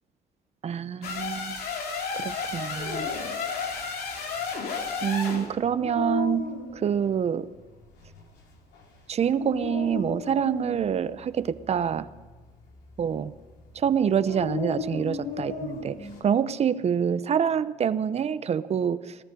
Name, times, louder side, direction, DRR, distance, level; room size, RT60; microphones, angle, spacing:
voice 1, 0.6-1.6 2.1-3.1 5.0-6.5 6.8-7.5 9.1-12.1 13.0-13.3 13.7-19.2, right 8 dB, 40° right, 15 dB, 0.7 m, -26 dB
sound 1, 1.0-5.5, left 5 dB, 65° left, 2.9 m, -32 dB
Dog, 2.5-16.2, left 5 dB, 85° left, 3.9 m, -38 dB
18.5 x 14.0 x 5.2 m, 1.4 s
cardioid pair, 110°, 17 cm